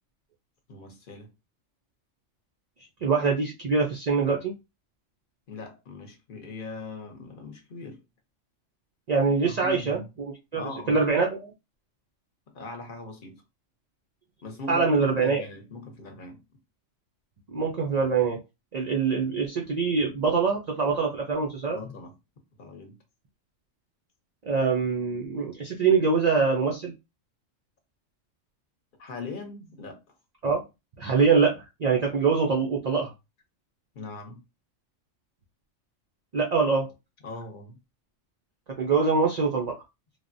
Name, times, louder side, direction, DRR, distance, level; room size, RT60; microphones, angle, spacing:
voice 1, 0.7-1.3 5.5-8.0 9.5-10.1 10.5-11.0 12.5-13.4 14.4-16.4 21.7-22.1 22.6-23.0 29.0-30.0 33.9-34.4 37.2-37.8, left 2 dB, 50° left, 0.8 m, -40 dB
voice 2, 3.0-4.5 9.1-10.0 10.5-11.5 14.7-15.4 17.5-18.4 18.7-21.8 24.5-26.9 30.4-30.6 31.0-33.1 36.3-36.9 38.8-39.8, right 5 dB, 65° right, 0.4 m, -24 dB
3.2 x 2.1 x 2.5 m
omnidirectional pair, 1.3 m